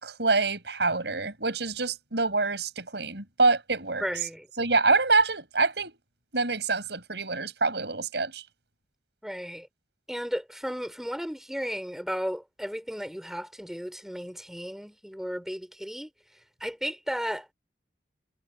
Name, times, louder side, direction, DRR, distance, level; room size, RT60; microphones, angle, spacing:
voice 1, 0.0-4.0 4.6-6.0 6.3-8.4, right 3 dB, 75° right, 5.1 m, -26 dB
voice 2, 4.0-4.5 9.2-9.7 10.1-16.1 16.6-17.5, equal, ahead, 4.2 m, -34 dB
head